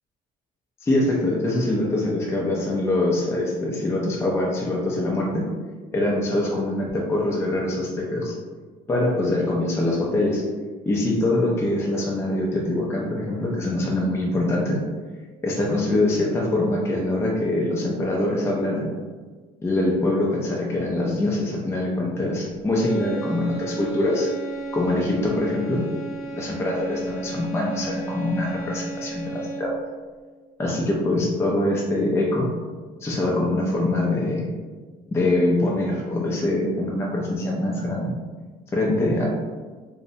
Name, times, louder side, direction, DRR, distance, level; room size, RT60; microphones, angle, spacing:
voice 1, 0.8-5.5 5.9-8.3 8.9-10.4 10.9-14.8 15.4-18.9 19.6-24.3 24.7-25.8 26.3-29.7 30.6-32.5 33.0-34.5 35.1-38.1 38.7-39.3, left 1 dB, 15° left, -3 dB, 0.4 m, -24 dB
sound 1, 22.7-29.9, right 2 dB, 70° left, 0.7 m, -34 dB
2.6 x 2.0 x 2.5 m, 1.4 s
cardioid pair, 110°, 17 cm